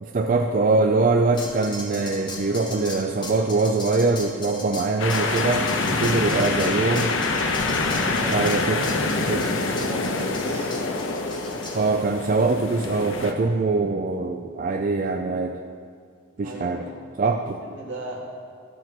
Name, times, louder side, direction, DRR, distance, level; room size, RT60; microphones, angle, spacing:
voice 1, 0.0-7.1 8.3-8.8 9.3-9.4 11.7-15.5 16.4-16.8 17.2-17.6, right 3 dB, 40° right, 4 dB, 0.4 m, -23 dB
sound 1, 1.3-11.8, left 2 dB, 25° left, 1.2 m, -38 dB
sound 2, 5.0-13.3, left 3 dB, 80° left, 0.7 m, -25 dB
voice 2, 5.9-6.5 7.8-8.4 8.7-10.8 16.4-16.9 17.6-18.2, right 2 dB, 65° right, -2 dB, 2.0 m, -37 dB
sound 3, 7.6-10.2, right 1 dB, 85° right, 1.1 m, -44 dB
13.0 x 4.6 x 6.1 m, 2.2 s
head